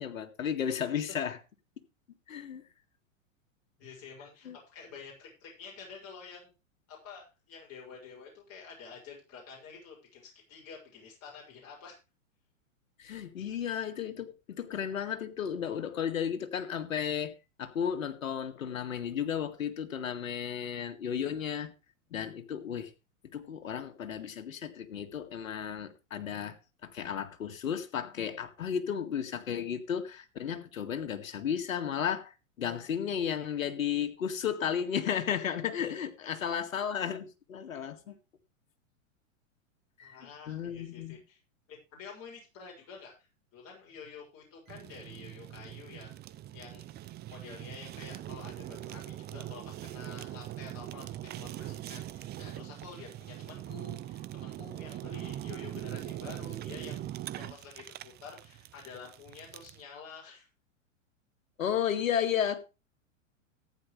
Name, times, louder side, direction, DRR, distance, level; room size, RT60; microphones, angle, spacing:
voice 1, 0.0-1.4 2.3-2.6 4.5-4.6 13.0-17.3 17.6-21.7 22.1-22.9 23.3-26.6 26.8-32.3 32.6-38.2 40.0-41.2 61.6-62.6, left 8 dB, 80° left, 2.1 m, -33 dB
voice 2, 3.8-6.5 6.9-12.0 38.0-38.2 40.0-41.4 41.7-43.1 43.5-46.1 46.5-46.9 47.3-60.5, left 5 dB, 35° left, 6.4 m, -49 dB
Fire, 44.7-59.8, right 13 dB, 25° right, 0.7 m, -42 dB
14.5 x 9.8 x 3.2 m
hypercardioid pair, 115°, 40 cm